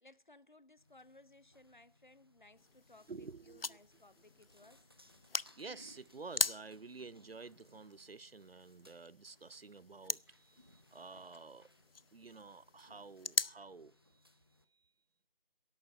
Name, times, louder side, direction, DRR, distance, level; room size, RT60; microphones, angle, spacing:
voice 1, 0.0-4.9, left 2 dB, 55° left, 1.1 m, -61 dB
sound 1, 0.8-14.6, left 1 dB, 25° right, 0.9 m, -66 dB
sound 2, 2.6-13.6, left 4 dB, 75° left, 0.7 m, -42 dB
voice 2, 3.1-3.8 5.6-11.7 12.1-14.2, right 4 dB, 80° right, 0.7 m, -51 dB
13.0 x 11.5 x 9.2 m
figure-of-eight pair, 170°, 29 cm